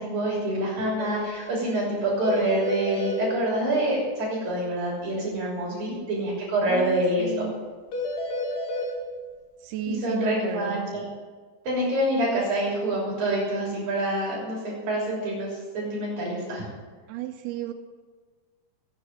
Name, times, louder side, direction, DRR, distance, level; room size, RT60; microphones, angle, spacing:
voice 1, 0.0-7.5 10.0-11.1 11.6-16.7, right 1 dB, 50° right, -5 dB, 4.7 m, -26 dB
sound 1, 1.0-1.1 1.4-1.5 1.7-1.8 2.2-3.2 7.9-8.9, left 2 dB, 65° left, 4.0 m, -30 dB
voice 2, 5.7-6.1 6.7-7.5 9.6-10.9 12.3-12.5 17.1-17.7, right 9 dB, 85° right, 5 dB, 2.3 m, -33 dB
15.5 x 8.6 x 7.6 m, 1.5 s
omnidirectional pair, 5.3 m